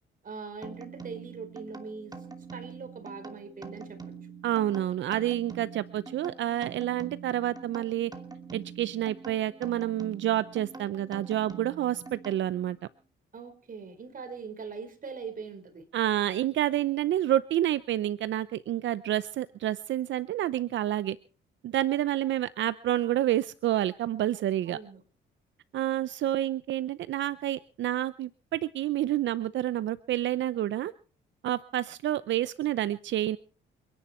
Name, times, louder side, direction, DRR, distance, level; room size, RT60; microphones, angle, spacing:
voice 1, 0.2-2.1 2.5-4.0 13.3-15.8 24.7-25.0, right 5 dB, 45° right, 8 dB, 4.5 m, -41 dB
sound 1, 0.6-12.8, right 5 dB, 20° right, 2.8 m, -45 dB
voice 2, 4.4-8.1 8.5-12.8 15.9-21.2 21.6-24.8 25.7-30.9 31.4-33.4, right 13 dB, 70° right, 15 dB, 0.7 m, -29 dB
28.5 x 10.5 x 4.4 m, 0.40 s
cardioid pair, 90°, 20 cm